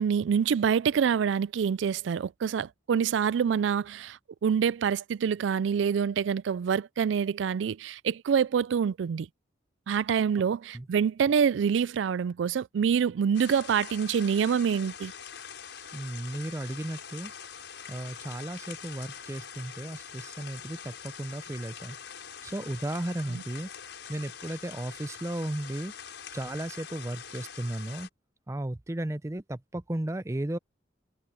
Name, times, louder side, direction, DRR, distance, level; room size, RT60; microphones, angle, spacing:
voice 1, 0.0-9.3 9.9-15.1 23.3-23.4, right 7 dB, 85° right, 0.3 m, -26 dB
sound 1, 13.3-28.1, left 7 dB, 80° left, 5.5 m, -44 dB
voice 2, 15.9-17.3 17.9-22.0 22.4-23.7 24.1-25.9 26.3-28.1 28.5-30.6, right 1 dB, 15° right, 0.5 m, -35 dB
head